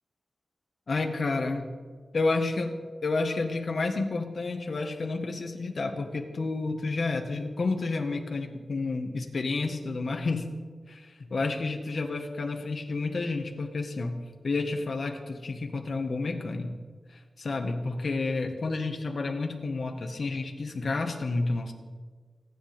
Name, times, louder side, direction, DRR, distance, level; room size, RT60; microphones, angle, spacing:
voice 1, 0.9-1.7 2.1-2.7 3.0-10.5 10.9-14.2 14.4-16.7 17.1-21.7, left 3 dB, 60° left, 4 dB, 1.7 m, -30 dB
27.5 x 10.5 x 3.6 m, 1.5 s
wide cardioid pair, 140°, 0 cm